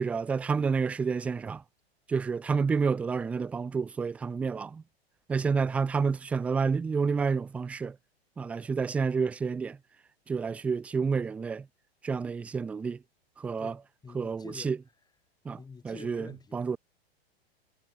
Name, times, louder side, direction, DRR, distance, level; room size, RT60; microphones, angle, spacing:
voice 1, 0.0-1.6 2.1-4.8 5.3-7.9 8.4-9.8 10.3-11.6 12.0-13.0 13.4-13.7 14.1-14.8 15.5-15.6 15.8-16.8, right 5 dB, 5° right, 0.3 m, -29 dB
voice 2, 13.6-14.8 15.6-16.8, left 5 dB, 10° left, 6.2 m, -47 dB
figure-of-eight pair, 100°, 31 cm